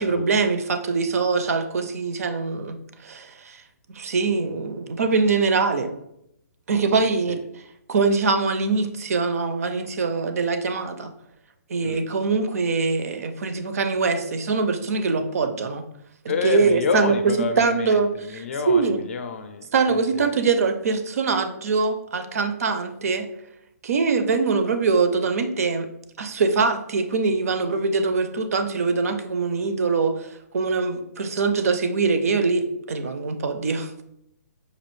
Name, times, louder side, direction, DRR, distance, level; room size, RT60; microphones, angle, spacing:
voice 1, 0.0-3.6 3.9-5.9 6.7-7.4 7.9-11.1 11.7-15.8 16.2-19.0 19.7-23.3 23.8-25.9 26.2-30.3 30.5-33.9, right 4 dB, 60° right, 8 dB, 0.4 m, -23 dB
voice 2, 16.3-20.3, left 4 dB, 45° left, 8 dB, 0.4 m, -29 dB
5.1 x 2.4 x 3.1 m, 0.80 s
hypercardioid pair, 170°, 9 cm